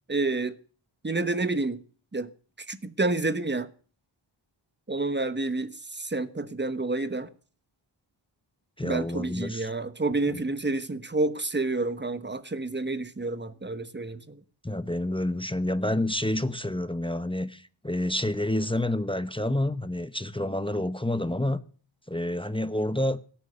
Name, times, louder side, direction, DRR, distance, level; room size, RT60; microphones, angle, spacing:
voice 1, 0.1-0.5 1.0-1.8 2.1-2.3 2.6-3.7 4.9-7.3 8.8-14.4, right 2 dB, 20° right, 1.1 m, -29 dB
voice 2, 8.8-9.7 10.3-10.4 14.6-21.6 22.1-23.2, left 1 dB, 10° left, 0.8 m, -28 dB
17.5 x 8.3 x 6.7 m
wide cardioid pair, 65°, 48 cm